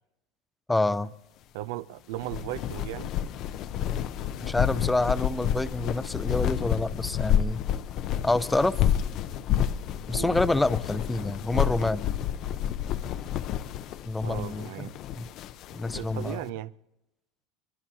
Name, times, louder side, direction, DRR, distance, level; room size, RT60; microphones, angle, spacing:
voice 1, 0.7-1.1 4.4-7.6 8.2-8.8 10.1-12.0 14.0-14.9 15.2-15.3 15.7-16.4, left 2 dB, 10° left, 0.5 m, -27 dB
voice 2, 1.5-3.1 10.1-10.4 14.2-15.0 15.9-16.7, right 15 dB, 75° right, 0.5 m, -36 dB
sound 1, 2.2-16.3, left 10 dB, 50° left, 0.6 m, -29 dB
23.5 x 21.5 x 2.8 m
supercardioid pair, 120°, 0 cm